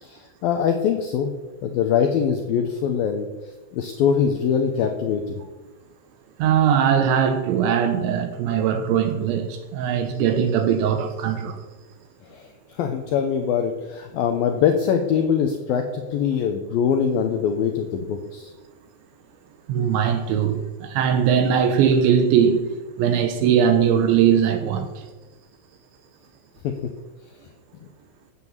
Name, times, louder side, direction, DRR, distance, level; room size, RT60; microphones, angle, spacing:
voice 1, 0.0-1.3 1.6-3.3 3.7-5.4 12.3-18.5 26.6-26.7, left 7 dB, 80° left, 2.1 m, -23 dB
voice 2, 6.4-11.5 19.7-22.7 23.0-24.9, right 8 dB, 75° right, 3.2 m, -20 dB
14.5 x 9.2 x 7.3 m
omnidirectional pair, 5.7 m